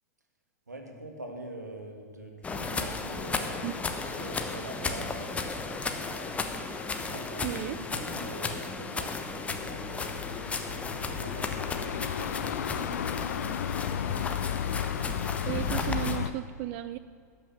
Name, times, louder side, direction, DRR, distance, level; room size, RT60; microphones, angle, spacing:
voice 1, 0.7-3.6 4.0-6.4 7.0-11.5 12.1-13.4, right 1 dB, 85° right, 3 dB, 2.0 m, -44 dB
sound 1, 2.4-16.2, left 4 dB, 15° left, 1.0 m, -35 dB
voice 2, 7.4-7.8 15.5-17.0, right 14 dB, 45° right, 13 dB, 0.4 m, -34 dB
Night Traffic, 9.5-16.3, left 9 dB, 70° left, 0.4 m, -34 dB
13.5 x 6.3 x 9.2 m, 2.3 s
figure-of-eight pair, 100°, 9 cm